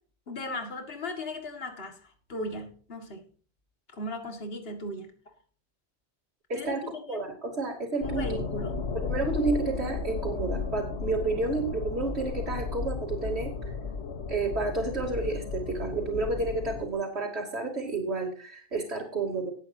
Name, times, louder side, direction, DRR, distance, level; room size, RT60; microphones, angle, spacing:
voice 1, 0.3-3.2 3.9-5.1 6.6-7.2 8.0-8.9, left 1 dB, 65° left, 5 dB, 2.2 m, -37 dB
voice 2, 6.5-8.4 8.9-13.5 14.3-19.5, right 3 dB, 80° right, -4 dB, 3.1 m, -30 dB
sound 1, 8.0-16.9, left 5 dB, 90° left, 1.4 m, -34 dB
18.0 x 9.4 x 2.8 m, 0.43 s
omnidirectional pair, 1.1 m